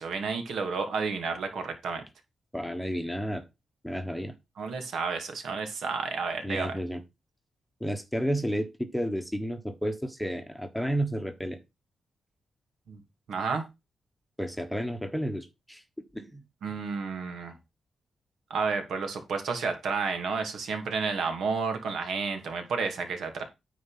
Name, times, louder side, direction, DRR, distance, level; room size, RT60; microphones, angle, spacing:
voice 1, 0.0-2.0 4.6-6.8 12.9-13.0 13.3-13.6 16.6-17.6 18.5-23.4, right 5 dB, 75° right, 2.3 m, -31 dB
voice 2, 2.5-3.4 3.8-4.3 6.4-7.0 7.8-11.6 14.4-15.8 16.1-16.4, equal, ahead, 1.2 m, -31 dB
9.6 x 4.2 x 5.7 m
wide cardioid pair, 140°, 0 cm